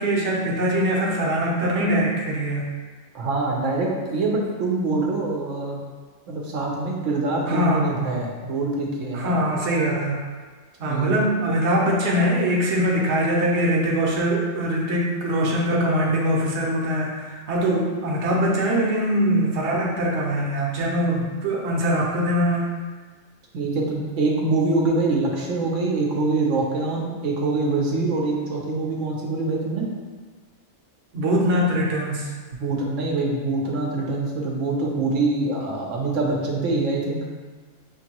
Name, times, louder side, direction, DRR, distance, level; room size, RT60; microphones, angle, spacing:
voice 1, 0.0-2.7 7.4-7.9 9.1-10.2 10.8-22.7 31.1-32.3, equal, 65° right, -2 dB, 1.0 m, -22 dB
voice 2, 3.1-5.8 6.3-9.3 10.9-11.1 23.5-29.9 32.6-37.2, right 3 dB, 90° right, -2 dB, 1.0 m, -24 dB
5.3 x 2.6 x 2.9 m, 1.4 s
omnidirectional pair, 1.3 m